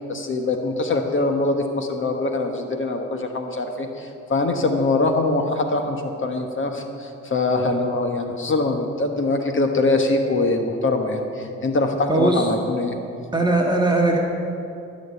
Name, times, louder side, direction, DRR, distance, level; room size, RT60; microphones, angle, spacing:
voice 1, 0.0-13.0, left 2 dB, 40° left, 4 dB, 1.4 m, -23 dB
voice 2, 12.1-12.4 13.3-14.2, right 2 dB, 15° right, -1 dB, 1.7 m, -19 dB
14.5 x 6.5 x 9.5 m, 2.6 s
cardioid pair, 90°, 30 cm